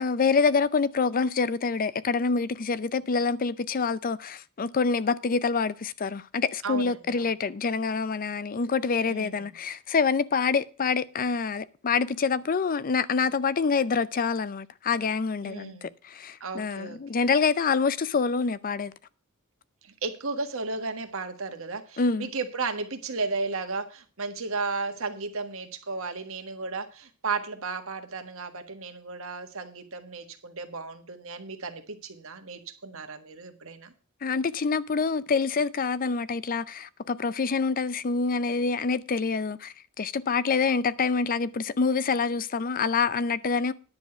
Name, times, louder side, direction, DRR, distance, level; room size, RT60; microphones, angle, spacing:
voice 1, 0.0-18.9 22.0-22.3 34.2-43.7, left 5 dB, 40° left, 0.5 m, -26 dB
voice 2, 6.6-7.3 9.1-9.5 15.4-15.9 16.4-17.0 19.8-33.9, right 4 dB, 65° right, 1.6 m, -34 dB
10.5 x 7.0 x 5.8 m
head